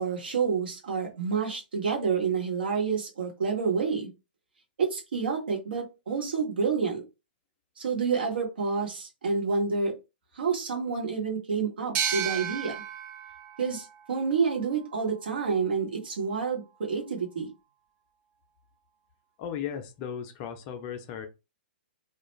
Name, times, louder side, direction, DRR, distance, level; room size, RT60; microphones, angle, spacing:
voice 1, 0.0-4.1 4.8-7.0 7.8-9.9 10.4-12.7 13.6-17.5, right 5 dB, 70° right, 1.1 m, -28 dB
sound 1, 11.9-15.3, right 8 dB, 30° right, 0.5 m, -34 dB
voice 2, 19.4-21.3, left 8 dB, 35° left, 0.5 m, -36 dB
2.3 x 2.2 x 3.1 m
hypercardioid pair, 120°, 6 cm